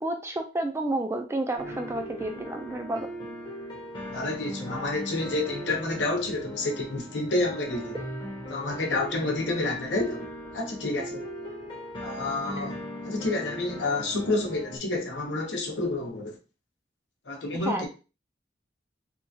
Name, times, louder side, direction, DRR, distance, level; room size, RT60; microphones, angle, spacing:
voice 1, 0.0-3.1 12.6-12.7 17.6-17.9, right 2 dB, 15° right, 0.3 m, -30 dB
sound 1, 1.6-14.8, equal, 25° left, 0.7 m, -39 dB
voice 2, 4.0-8.0 8.5-10.3 10.5-11.2 12.0-12.8 13.0-16.4 17.3-17.9, left 2 dB, 85° left, 0.8 m, -29 dB
2.9 x 2.3 x 2.7 m
head